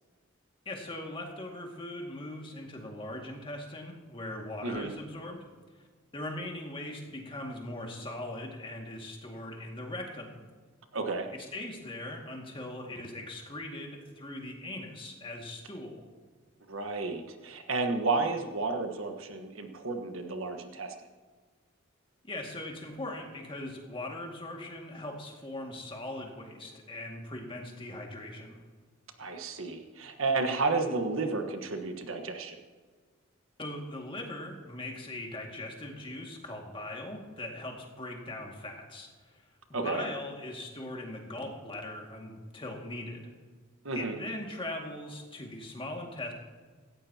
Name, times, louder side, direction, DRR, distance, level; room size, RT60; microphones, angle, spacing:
voice 1, 0.7-5.5 6.1-10.5 11.3-16.0 22.2-28.6 33.6-39.4 39.8-43.3 43.9-46.3, left 1 dB, 25° left, 1 dB, 2.1 m, -40 dB
voice 2, 4.6-4.9 10.9-11.3 16.7-20.9 29.2-32.6 39.7-40.0 43.8-44.2, right 3 dB, 80° right, 5 dB, 1.4 m, -32 dB
17.5 x 15.0 x 2.9 m, 1.5 s
head